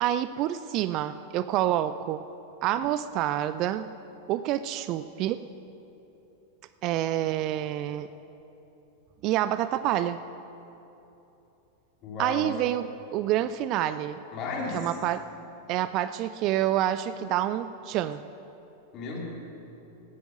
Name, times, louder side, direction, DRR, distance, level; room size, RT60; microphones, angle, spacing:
voice 1, 0.0-2.2 2.6-3.9 4.3-5.4 6.8-8.1 9.2-10.2 12.2-14.2 14.7-15.3 15.7-18.2, right 12 dB, 40° right, 13 dB, 0.4 m, -27 dB
voice 2, 12.0-12.5 14.3-14.9 18.9-19.3, left 3 dB, 35° left, -2 dB, 3.6 m, -34 dB
17.0 x 9.8 x 6.4 m, 3.0 s
figure-of-eight pair, 90°, 0 cm